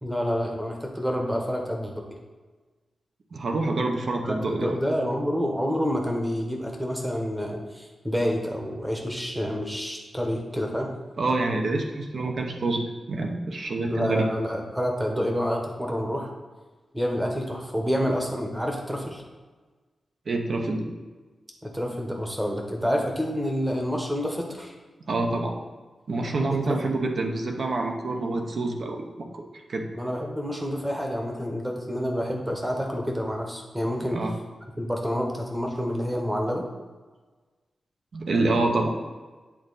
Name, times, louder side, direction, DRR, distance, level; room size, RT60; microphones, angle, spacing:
voice 1, 0.0-2.0 4.2-10.9 13.9-16.3 16.9-19.2 21.6-24.7 26.5-26.8 29.9-34.2 34.8-36.6, equal, 5° right, 1 dB, 1.0 m, -28 dB
voice 2, 3.3-4.7 11.2-14.3 20.3-20.9 25.1-25.6 26.1-29.4 29.7-29.8 34.1-34.3 38.1-38.9, right 2 dB, 50° right, 2 dB, 0.8 m, -27 dB
8.5 x 3.9 x 4.0 m, 1.3 s
wide cardioid pair, 165°, 0 cm